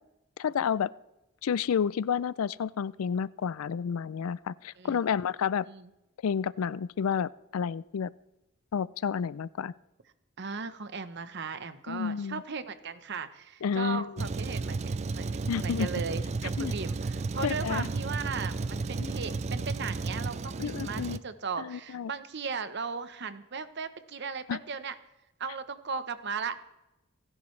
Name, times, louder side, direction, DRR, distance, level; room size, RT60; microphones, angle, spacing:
voice 1, 0.4-0.9 1.4-5.7 6.2-8.1 8.7-9.7 11.9-12.4 13.6-14.3 15.5-15.9 16.6-16.7 17.4-17.9 19.0-19.2 20.6-21.2 21.6-22.1 24.5-24.6, left 7 dB, 90° left, 20 dB, 0.4 m, -30 dB
voice 2, 10.4-14.8 15.1-24.9 25.4-26.6, right 5 dB, 55° right, 11 dB, 0.9 m, -37 dB
Truck, 14.2-21.2, right 3 dB, 30° right, 0.4 m, -33 dB
28.5 x 11.0 x 3.3 m, 0.98 s
head